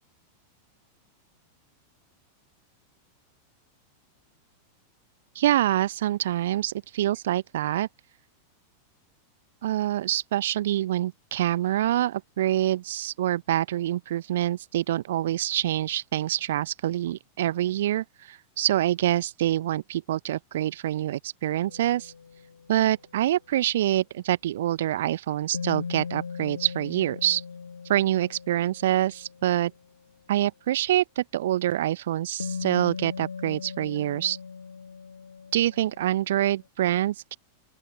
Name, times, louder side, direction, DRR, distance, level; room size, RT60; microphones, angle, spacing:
voice 1, 5.3-7.9 9.6-22.1 22.7-27.4 27.8-29.7 30.3-34.4 35.5-37.4, right 13 dB, 60° right, 0.8 m, -26 dB
sound 1, 21.6-23.1 25.5-30.0 32.4-36.6, left 5 dB, 75° left, 5.5 m, -39 dB
open air
figure-of-eight pair, 90°, 0 cm